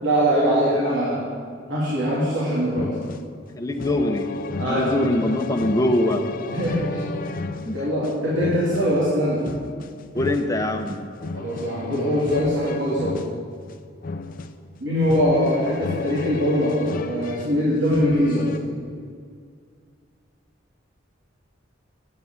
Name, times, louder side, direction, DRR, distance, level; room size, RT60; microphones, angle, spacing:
voice 1, 0.0-1.2 1.7-2.9 4.6-5.1 6.5-7.4 7.7-9.4 11.3-13.1 14.8-18.5, equal, 70° right, -8 dB, 2.8 m, -22 dB
sound 1, 2.7-18.6, left 3 dB, 50° left, 0.5 m, -34 dB
voice 2, 3.5-4.3 4.7-6.2 7.6-7.7 8.4-8.5 10.1-11.0, left 1 dB, 20° left, 4 dB, 0.9 m, -23 dB
8.5 x 8.2 x 8.6 m, 2.1 s
head